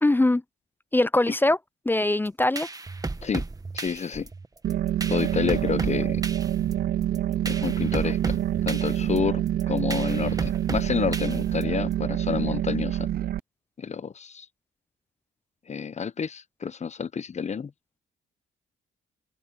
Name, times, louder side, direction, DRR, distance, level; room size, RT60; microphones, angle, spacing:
voice 1, 0.0-0.4 0.9-1.6 1.9-2.7, left 2 dB, 10° left, 0.4 m, -21 dB
sound 1, 2.3-11.9, right 3 dB, 20° right, 1.5 m, -35 dB
voice 2, 3.7-4.3 5.1-6.2 7.5-8.4 8.7-13.1 13.8-14.5 15.7-17.7, left 6 dB, 35° left, 0.9 m, -29 dB
sound 2, 4.6-13.4, right 11 dB, 50° right, 0.5 m, -26 dB
cardioid pair, 90°, 20 cm